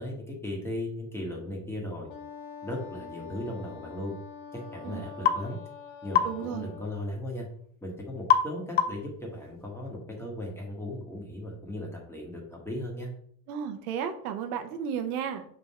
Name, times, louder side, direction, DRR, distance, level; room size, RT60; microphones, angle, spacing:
voice 1, 0.0-2.1 2.6-4.1 4.5-5.6 6.0-7.5 7.8-13.1, left 1 dB, 5° left, -2 dB, 1.5 m, -37 dB
Wind instrument woodwind instrument, 2.1-7.0, left 6 dB, 65° left, 1.3 m, -45 dB
sound 1, 5.3-5.4 6.1-6.4 8.3-8.5 8.8-9.1, left 8 dB, 25° left, 0.4 m, -23 dB
voice 2, 6.2-6.7 13.5-15.5, right 8 dB, 90° right, 7 dB, 1.0 m, -33 dB
5.8 x 3.9 x 4.3 m, 0.64 s
supercardioid pair, 135°, 43 cm